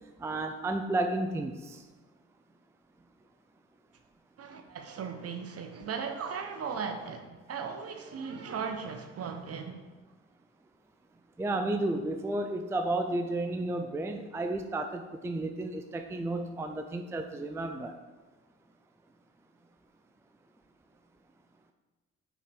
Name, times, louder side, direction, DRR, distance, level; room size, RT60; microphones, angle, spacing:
voice 1, 0.2-1.8 11.4-17.9, right 2 dB, 10° right, 6 dB, 0.4 m, -32 dB
voice 2, 4.4-9.8, right 6 dB, 50° right, 5 dB, 0.9 m, -37 dB
4.8 x 4.3 x 5.2 m, 1.3 s
cardioid pair, 90°, 30 cm